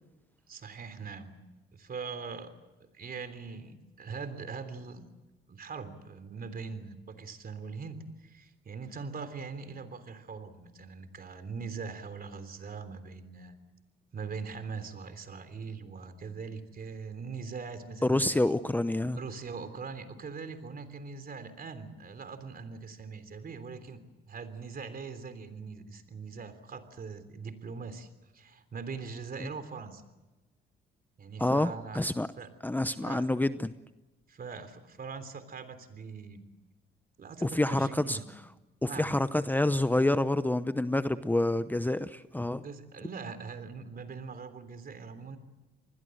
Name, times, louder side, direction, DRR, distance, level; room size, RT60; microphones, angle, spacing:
voice 1, 0.5-1.3 1.7-2.5 2.8-5.1 5.5-13.5 14.1-18.2 19.1-28.1 28.3-30.0 31.2-32.0 32.4-32.5 33.0-33.2 34.3-36.4 37.2-38.3 38.9-39.1 42.5-45.4, right 5 dB, 50° right, 10 dB, 3.4 m, -42 dB
voice 2, 18.0-19.2 29.4-29.5 31.4-32.3 32.6-33.7 37.4-38.5 38.8-42.6, left 1 dB, 10° left, 12 dB, 0.8 m, -28 dB
27.5 x 20.5 x 7.8 m, 1.1 s
cardioid pair, 90°, 20 cm